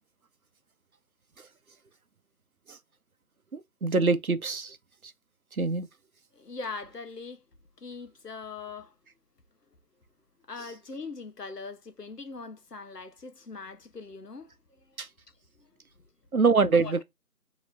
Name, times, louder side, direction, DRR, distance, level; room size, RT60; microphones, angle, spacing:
voice 1, 3.5-4.8 5.6-5.9 15.0-15.1 16.3-17.0, right 4 dB, 65° right, 0.7 m, -24 dB
voice 2, 6.4-7.4 7.8-8.9 10.5-14.5 16.7-17.0, left 4 dB, 85° left, 1.1 m, -41 dB
5.1 x 3.0 x 2.6 m
figure-of-eight pair, 180°, 47 cm